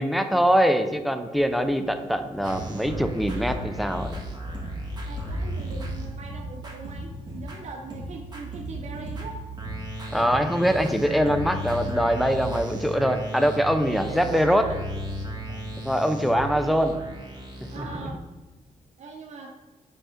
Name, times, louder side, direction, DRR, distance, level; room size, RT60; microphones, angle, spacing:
voice 1, 0.0-4.1 10.1-14.7 15.8-17.0 17.8-17.9, equal, ahead, 8 dB, 0.5 m, -23 dB
sound 1, 1.3-16.4, right 5 dB, 80° left, 2.0 m, -41 dB
sound 2, 2.4-7.6 7.9-18.0, equal, 30° right, 1.5 m, -35 dB
voice 2, 5.0-9.4 14.0-14.8 15.5-15.6 16.0-16.6 17.7-18.2 19.0-19.5, right 3 dB, 60° right, 2 dB, 0.6 m, -41 dB
5.0 x 3.7 x 5.0 m, 1.2 s
cardioid pair, 85°, 13 cm